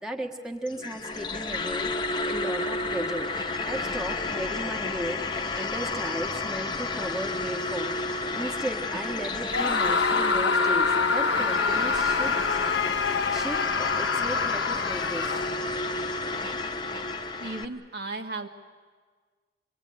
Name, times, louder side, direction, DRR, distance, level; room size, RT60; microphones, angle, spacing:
voice 1, 0.0-1.9 2.2-3.3 3.6-5.2 5.5-7.9 8.3-12.3 13.3-15.5, equal, 5° right, 1 dB, 1.5 m, -35 dB
sound 1, 0.7-17.7, left 3 dB, 25° left, 1.1 m, -31 dB
Screaming, 9.5-15.8, left 5 dB, 75° left, 1.0 m, -26 dB
voice 2, 17.4-18.5, right 3 dB, 60° right, 4 dB, 1.7 m, -35 dB
26.0 x 21.5 x 9.6 m, 1.5 s
head